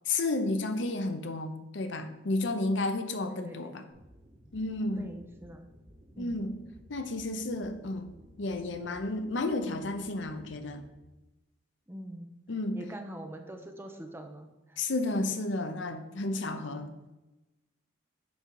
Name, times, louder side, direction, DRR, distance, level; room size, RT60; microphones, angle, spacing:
voice 1, 0.1-3.8 4.5-5.1 6.2-6.6 6.9-8.1 8.4-10.8 12.5-12.8 14.8-17.1, left 2 dB, 70° left, 9 dB, 0.7 m, -32 dB
voice 2, 3.3-3.8 5.0-5.7 6.1-6.4 11.9-12.3 12.7-14.8, equal, 10° right, 4 dB, 0.7 m, -44 dB
sound 1, 3.9-11.0, equal, 35° right, 2.1 m, -56 dB
7.2 x 5.1 x 4.6 m, 1.0 s
head